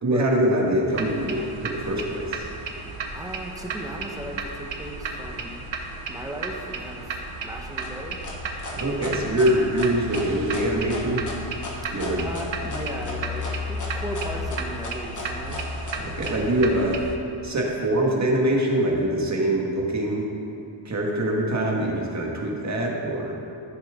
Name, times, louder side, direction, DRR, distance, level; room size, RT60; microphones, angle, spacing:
voice 1, 0.0-2.5 8.7-11.2 11.9-12.3 15.9-17.0 17.4-20.3 20.8-23.3, right 1 dB, 35° right, -1 dB, 1.6 m, -24 dB
sound 1, 0.9-17.2, right 1 dB, 75° right, 1.0 m, -33 dB
voice 2, 3.1-5.6 6.1-8.2 11.8-11.9 12.2-15.6, right 1 dB, 10° right, 0 dB, 1.0 m, -36 dB
sound 2, 7.8-16.3, left 2 dB, 40° left, 1.4 m, -36 dB
14.0 x 7.3 x 3.6 m, 2.9 s
wide cardioid pair, 155°, 46 cm